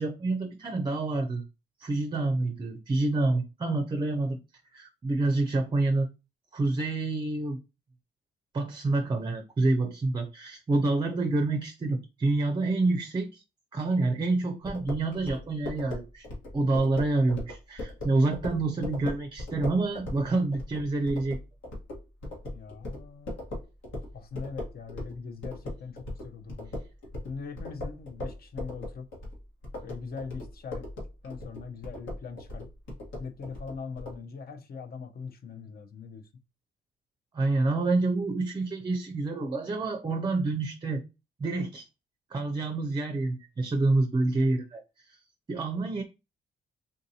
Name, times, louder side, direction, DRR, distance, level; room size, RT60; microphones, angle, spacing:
voice 1, 0.0-1.4 1.8-4.4 4.7-6.1 6.5-7.6 8.5-13.4 13.7-16.3 16.5-21.4 37.3-41.0 41.4-41.8 42.3-44.8 45.5-46.0, right 2 dB, 25° right, 0.5 m, -27 dB
sound 1, 14.6-25.2 25.4-34.2, left 1 dB, 70° left, 1.4 m, -38 dB
voice 2, 22.5-23.4 24.1-26.7 27.2-29.1 29.8-30.9 31.2-32.7 33.2-36.3, left 5 dB, 50° left, 0.7 m, -41 dB
3.7 x 2.6 x 2.7 m
cardioid pair, 90°, 20 cm